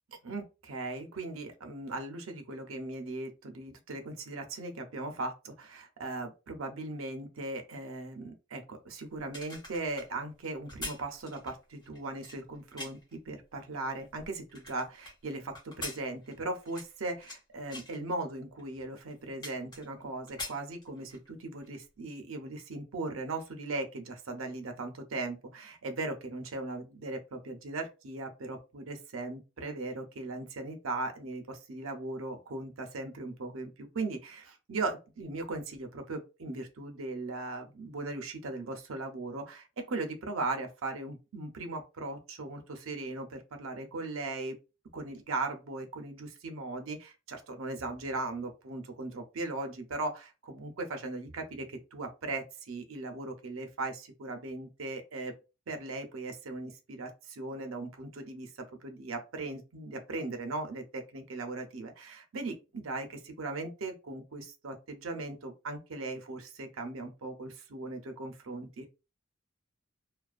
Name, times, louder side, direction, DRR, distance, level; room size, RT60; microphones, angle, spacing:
voice 1, 0.1-44.6 44.9-55.3 55.7-58.5 58.8-68.9, right 2 dB, 85° right, 5 dB, 0.6 m, -38 dB
sound 1, 9.2-13.2 13.7-15.1 15.5-17.4 17.7-18.0 18.6-18.7 19.0-20.0 20.3-21.3 21.6-21.8, left 2 dB, 20° left, 0.8 m, -44 dB
2.4 x 2.3 x 2.4 m, 0.29 s
head